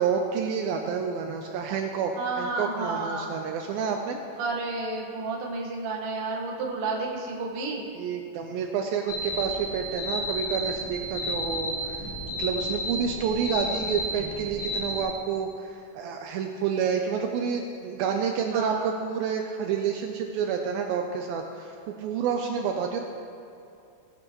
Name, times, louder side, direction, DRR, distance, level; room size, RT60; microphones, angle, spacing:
voice 1, 0.0-4.2 7.9-12.1 12.4-23.0, right 6 dB, 80° right, 3 dB, 2.3 m, -29 dB
voice 2, 2.1-3.3 4.4-7.9 18.5-18.9, right 3 dB, 55° right, -1 dB, 1.7 m, -31 dB
sound 1, 9.1-15.0, equal, 15° left, 1.6 m, -32 dB
18.5 x 8.9 x 3.0 m, 2.6 s
omnidirectional pair, 4.5 m